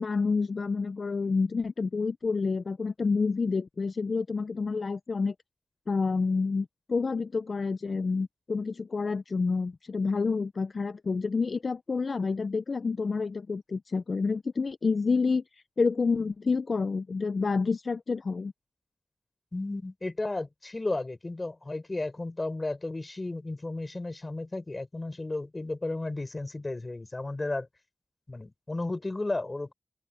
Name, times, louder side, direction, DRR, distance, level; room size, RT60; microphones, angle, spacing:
voice 1, 0.0-5.3 5.9-18.5, left 4 dB, 60° left, 0.6 m, -28 dB
voice 2, 19.5-27.7 28.3-29.7, left 2 dB, 35° left, 4.9 m, -33 dB
open air
cardioid pair, 55°, 0 cm